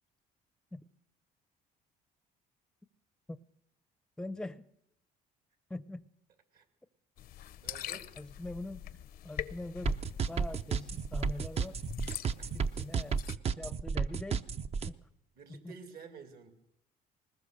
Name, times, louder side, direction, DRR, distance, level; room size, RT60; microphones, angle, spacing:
voice 1, 4.2-4.7 5.7-6.0 8.2-8.8 9.2-10.0 10.3-11.8 12.5-13.2 13.6-14.5 14.9-15.0 15.5-15.7, left 2 dB, 5° left, 15 dB, 0.6 m, -42 dB
sound 1, 7.2-13.4, left 11 dB, 65° left, 0.7 m, -44 dB
voice 2, 7.6-8.3 12.4-12.5 15.4-16.5, right 5 dB, 65° right, 6 dB, 2.6 m, -51 dB
sound 2, 9.9-14.9, right 5 dB, 40° right, 0.6 m, -32 dB
20.5 x 19.5 x 6.6 m, 0.84 s
cardioid pair, 110°, 17 cm